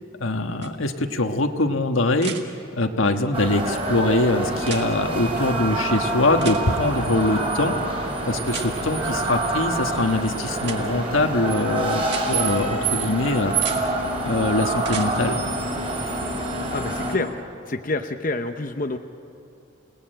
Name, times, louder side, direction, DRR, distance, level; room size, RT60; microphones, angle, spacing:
voice 1, 0.2-2.3 2.7-7.7 8.3-13.9 14.2-15.5, left 2 dB, 85° left, 5 dB, 1.5 m, -23 dB
sound 1, 0.6-0.7 2.2-2.4 4.6-4.9 6.4-6.6 8.5-8.7 10.6-10.8 12.0-12.3 13.5-13.8 14.8-15.1 17.1-17.2, right 7 dB, 55° right, 1.9 m, -34 dB
sound 2, 3.3-17.1, right 2 dB, 25° right, 4.4 m, -26 dB
voice 2, 16.7-17.3 17.7-19.0, left 2 dB, 40° left, 6 dB, 0.8 m, -27 dB
29.0 x 18.5 x 9.0 m, 2.7 s
head